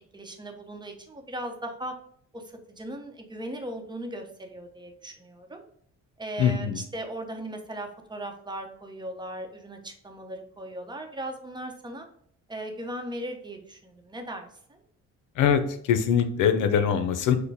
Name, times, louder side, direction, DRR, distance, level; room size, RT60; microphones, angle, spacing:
voice 1, 0.1-2.0 2.3-5.6 6.2-12.1 12.5-14.8, right 1 dB, 15° right, 4 dB, 0.9 m, -38 dB
voice 2, 6.4-6.8 15.4-15.6 15.9-17.4, left 8 dB, 85° left, 8 dB, 0.7 m, -22 dB
6.6 x 2.2 x 3.4 m, 0.65 s
cardioid pair, 90°, 30 cm